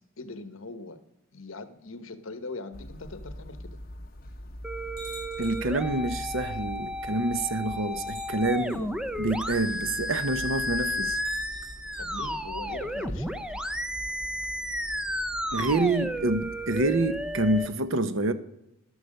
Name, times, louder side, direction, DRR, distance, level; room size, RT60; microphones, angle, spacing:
voice 1, 0.2-1.0 1.3-3.8 8.6-9.3 12.0-13.7, left 3 dB, 75° left, 1.1 m, -41 dB
sound 1, 2.7-17.7, equal, 45° left, 1.2 m, -44 dB
sound 2, 4.6-17.7, left 1 dB, 5° right, 0.5 m, -33 dB
sound 3, 5.0-5.8 7.0-7.1 8.0-8.8 11.1-12.1, equal, 40° right, 6.0 m, -47 dB
voice 2, 5.4-8.8 9.2-11.2 15.5-18.3, right 2 dB, 70° right, 0.8 m, -27 dB
12.0 x 11.0 x 6.5 m
head